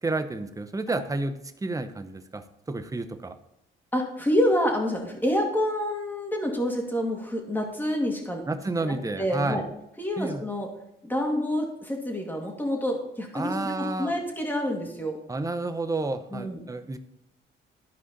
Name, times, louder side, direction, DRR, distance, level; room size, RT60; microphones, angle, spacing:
voice 1, 0.0-3.4 8.5-9.6 10.2-10.4 13.3-14.1 15.3-17.0, right 2 dB, 15° right, 9 dB, 0.8 m, -30 dB
voice 2, 3.9-8.4 8.8-9.6 10.0-10.7 11.0-15.2 16.3-16.6, equal, 10° left, 1 dB, 2.3 m, -27 dB
12.5 x 5.0 x 4.1 m, 0.84 s
cardioid pair, 90°, 20 cm